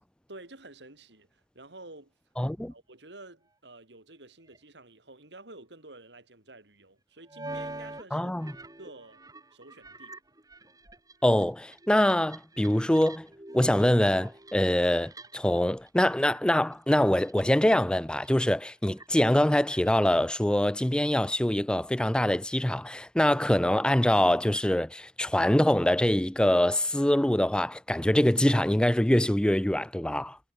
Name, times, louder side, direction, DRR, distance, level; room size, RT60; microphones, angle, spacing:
voice 1, 0.3-2.1 2.7-8.3 8.8-9.2 9.5-10.2, right 2 dB, 80° right, 4.6 m, -50 dB
voice 2, 2.4-2.7 8.1-8.5 11.2-13.3 13.5-30.4, left 1 dB, 5° left, 0.4 m, -24 dB
sound 1, 4.5-4.6 7.3-8.1 8.3-15.6 15.9-16.4 16.7-17.8 18.1-18.4 19.0-20.7, right 2 dB, 20° right, 7.9 m, -45 dB
head